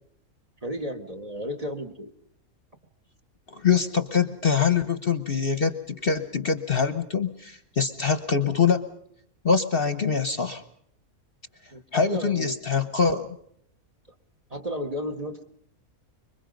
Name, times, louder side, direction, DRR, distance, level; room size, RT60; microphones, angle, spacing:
voice 1, 0.6-2.1 11.7-12.7 14.5-15.4, equal, 25° right, 8 dB, 1.5 m, -33 dB
voice 2, 3.5-8.8 9.4-10.6 11.9-13.3, left 6 dB, 45° left, 12 dB, 1.1 m, -24 dB
25.5 x 23.0 x 5.2 m, 0.67 s
omnidirectional pair, 1.5 m